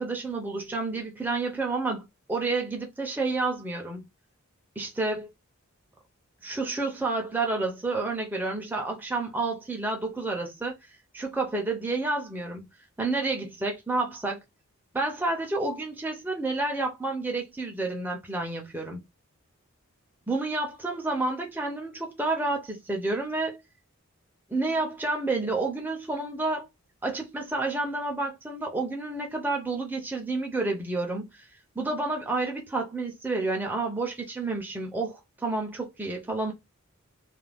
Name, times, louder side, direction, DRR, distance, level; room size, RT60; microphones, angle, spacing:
voice 1, 0.0-4.1 4.8-5.3 6.4-10.8 11.1-12.7 13.0-14.4 14.9-19.0 20.3-23.6 24.5-26.7 27.0-31.5 31.8-36.5, right 3 dB, 10° right, 0.4 m, -30 dB
2.4 x 2.2 x 3.3 m
head